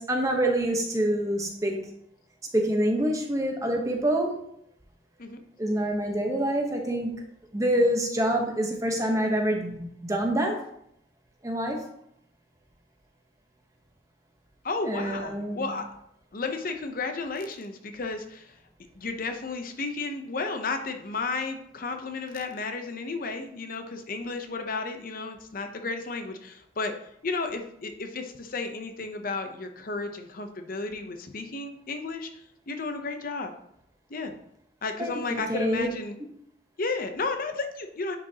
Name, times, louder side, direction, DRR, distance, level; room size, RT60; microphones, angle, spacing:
voice 1, 0.0-1.8 2.5-4.4 5.6-7.1 7.5-10.6 11.4-11.8 14.9-15.7 35.0-35.9, right 1 dB, 20° right, 2 dB, 1.0 m, -26 dB
voice 2, 14.6-15.8 16.3-18.5 19.0-26.9 27.2-32.3 32.7-33.5 34.1-34.3 34.8-36.2 36.8-38.2, left 3 dB, 50° left, 6 dB, 0.7 m, -33 dB
9.5 x 5.0 x 2.9 m, 0.73 s
head